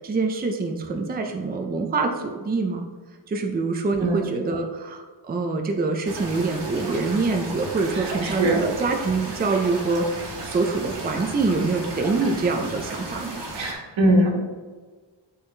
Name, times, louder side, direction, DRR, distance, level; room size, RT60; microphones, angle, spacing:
voice 1, 0.0-2.9 3.3-13.4, right 3 dB, 20° right, 3 dB, 0.5 m, -25 dB
sound 1, 6.0-13.7, right 2 dB, 60° right, 1.5 m, -34 dB
voice 2, 7.9-8.7 13.6-14.4, right 1 dB, 90° right, -2 dB, 1.7 m, -21 dB
8.2 x 3.9 x 3.3 m, 1.4 s
cardioid pair, 120°, 45 cm